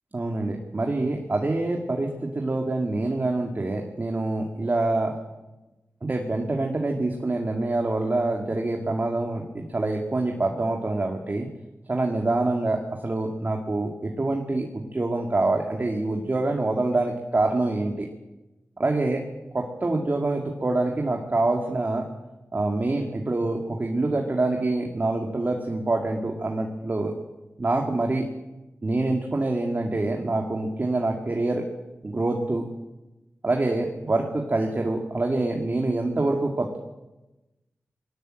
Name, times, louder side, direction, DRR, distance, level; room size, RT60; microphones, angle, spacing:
voice 1, 0.1-5.2 6.0-11.5 11.9-18.1 18.8-19.2 19.5-22.0 22.5-27.1 27.6-28.2 28.8-31.6 32.0-32.6 33.4-36.8, right 2 dB, 40° right, 1 dB, 2.2 m, -26 dB
21.0 x 17.5 x 7.8 m, 1.0 s
wide cardioid pair, 90°, 5 cm